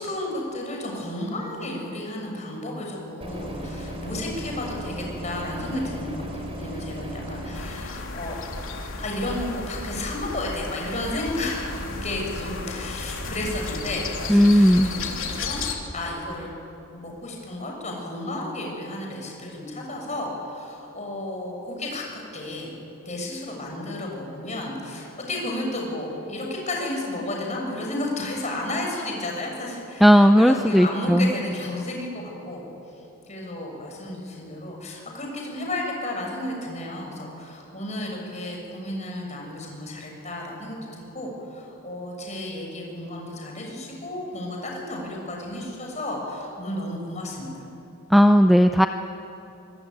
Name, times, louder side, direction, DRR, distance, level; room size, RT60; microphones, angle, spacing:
voice 1, 0.0-8.4 9.0-15.6 15.9-16.5 16.9-22.8 23.1-32.6 33.3-47.5, left 1 dB, 30° left, 0 dB, 6.9 m, -32 dB
sound 1, 3.2-7.6, equal, 25° right, 4.1 m, -35 dB
sound 2, 7.5-15.8, left 3 dB, 65° left, 3.0 m, -33 dB
voice 2, 14.3-14.9 30.0-31.3 48.1-48.9, equal, ahead, 6 dB, 0.5 m, -15 dB
25.5 x 23.5 x 9.3 m, 3.0 s
head